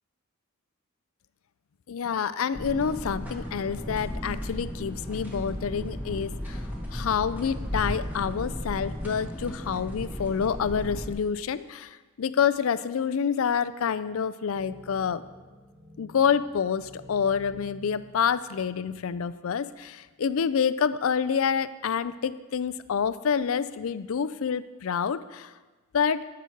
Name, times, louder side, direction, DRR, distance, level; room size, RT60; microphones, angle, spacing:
voice 1, 1.9-6.6 6.9-15.2 16.0-25.5 25.9-26.2, left 7 dB, 65° left, 15 dB, 0.4 m, -27 dB
sound 1, 2.5-11.1, equal, 10° right, 1.7 m, -35 dB
sound 2, 14.5-19.3 20.0-20.1 21.3-21.8 22.5-22.9, left 1 dB, 35° right, 4.1 m, -50 dB
15.0 x 6.1 x 4.5 m, 1.3 s
head